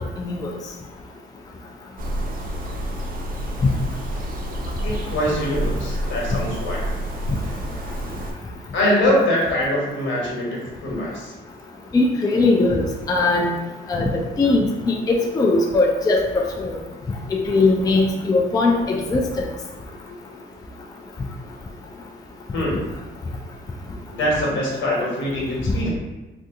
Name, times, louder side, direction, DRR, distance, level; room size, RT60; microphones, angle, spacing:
voice 1, 0.2-0.5 11.9-13.5 13.9-14.1 14.4-16.7 17.5-19.4, left 3 dB, 20° left, 1 dB, 0.4 m, -20 dB
sound 1, 2.0-8.3, equal, 45° right, 0.6 m, -29 dB
voice 2, 4.8-6.9 8.7-11.3 22.5-22.8 24.1-25.9, left 1 dB, 75° left, -4 dB, 1.3 m, -23 dB
2.6 x 2.3 x 3.7 m, 1.1 s
cardioid pair, 90°, 20 cm